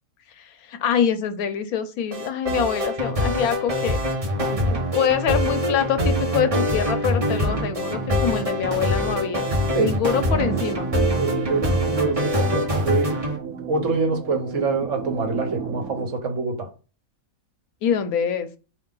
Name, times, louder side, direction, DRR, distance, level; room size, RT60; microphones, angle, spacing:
voice 1, 0.4-4.0 4.9-9.5 9.8-10.9 17.8-18.5, left 8 dB, 90° left, 10 dB, 1.1 m, -25 dB
sound 1, 2.1-13.4, equal, 30° right, 0.9 m, -24 dB
sound 2, 7.2-16.1, right 8 dB, 85° right, 1.1 m, -34 dB
voice 2, 9.7-10.6 11.2-13.2 13.5-16.7, right 4 dB, 60° right, 4 dB, 1.3 m, -26 dB
4.6 x 3.0 x 3.7 m, 0.33 s
omnidirectional pair, 1.5 m